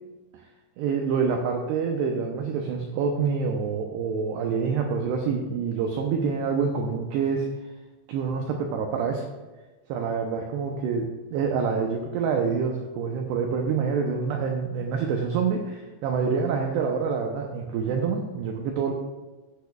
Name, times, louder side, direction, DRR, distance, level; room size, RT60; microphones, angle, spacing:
voice 1, 0.8-7.5 8.1-9.3 9.9-18.9, right 5 dB, 90° right, 2 dB, 2.3 m, -27 dB
15.0 x 8.5 x 2.3 m, 1.2 s
omnidirectional pair, 5.8 m